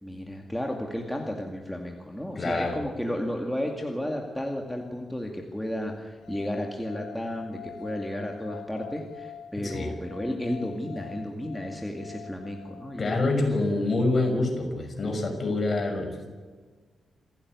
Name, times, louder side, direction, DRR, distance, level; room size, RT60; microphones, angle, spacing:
voice 1, 0.0-13.2 13.4-13.5, left 1 dB, ahead, 1 dB, 2.3 m, -33 dB
voice 2, 2.4-2.8 9.6-9.9 13.0-16.4, left 2 dB, 35° left, 4 dB, 6.0 m, -26 dB
sound 1, 6.2-13.3, left 9 dB, 80° left, 4.0 m, -45 dB
28.0 x 16.0 x 9.6 m, 1.4 s
wide cardioid pair, 170°, 0 cm